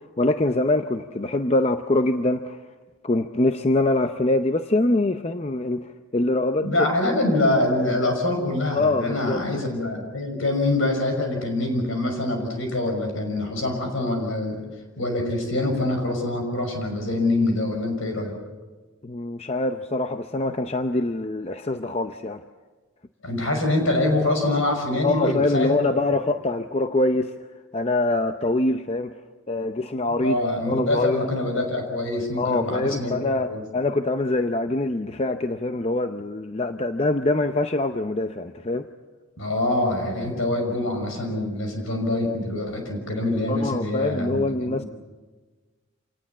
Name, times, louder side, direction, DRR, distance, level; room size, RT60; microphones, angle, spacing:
voice 1, 0.0-2.6 3.0-6.7 7.2-7.4 8.7-9.4 19.0-22.4 25.0-27.3 27.7-29.1 29.5-30.4 30.7-31.3 32.4-38.9 43.5-44.8, left 2 dB, 30° left, 8 dB, 0.6 m, -24 dB
voice 2, 6.6-14.6 15.0-18.3 23.2-25.8 26.1-26.2 30.2-33.6 39.4-44.9, left 2 dB, 65° left, 4 dB, 5.9 m, -25 dB
27.0 x 19.0 x 7.2 m, 1.3 s
head